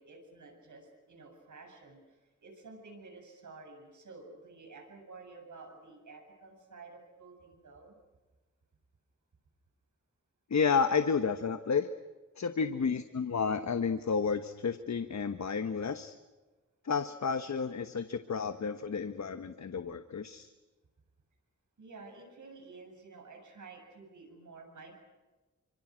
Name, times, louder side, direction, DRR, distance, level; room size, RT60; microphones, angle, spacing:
voice 1, 0.0-2.0 2.4-8.0 12.6-13.0 21.8-24.9, right 3 dB, 85° right, 3 dB, 7.8 m, -51 dB
voice 2, 10.5-11.9 12.4-16.1 16.8-20.5, left 5 dB, 70° left, 9 dB, 1.2 m, -31 dB
29.5 x 26.0 x 6.4 m, 1.2 s
wide cardioid pair, 135°, 29 cm